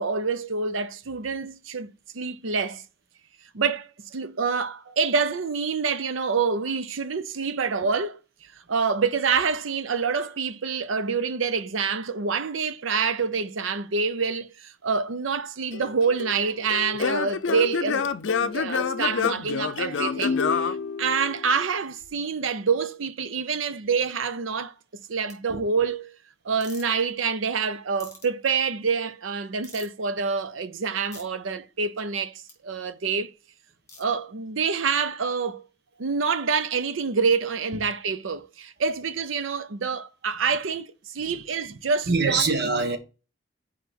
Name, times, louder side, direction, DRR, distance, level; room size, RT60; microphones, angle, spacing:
voice 1, 0.0-1.9 2.1-2.8 3.5-8.2 8.7-24.7 25.1-26.1 26.4-33.3 34.0-35.7 36.0-42.4 42.7-42.8, right 5 dB, 80° right, 0.6 m, -27 dB
Singing / Plucked string instrument, 15.7-21.6, left 5 dB, 70° left, 0.5 m, -27 dB
sound 1, 25.3-25.4 26.6-26.8 28.0-28.3 29.6-30.0 31.1-31.2 32.5-32.6 33.9-34.0, left 3 dB, 15° left, 2.6 m, -45 dB
voice 2, 42.1-43.0, right 4 dB, 55° right, 1.2 m, -24 dB
5.6 x 5.0 x 4.1 m
head